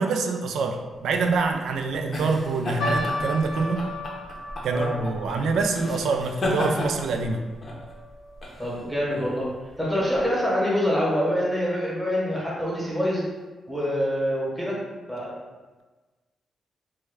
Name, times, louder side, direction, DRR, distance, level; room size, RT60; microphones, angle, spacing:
voice 1, 0.0-3.9 4.6-7.4, right 4 dB, 80° right, 4 dB, 0.3 m, -25 dB
sound 1, 1.0-10.2, left 1 dB, 35° left, 0.6 m, -33 dB
sound 2, 2.8-9.3 9.5-9.6 10.4-10.7 11.3-11.4 11.7-11.9, equal, 90° left, 0.7 m, -36 dB
voice 2, 8.6-9.5 9.8-13.2 13.7-14.8 15.1-15.4, equal, ahead, -7 dB, 0.9 m, -25 dB
3.3 x 2.1 x 3.3 m, 1.3 s
wide cardioid pair, 155°, 0 cm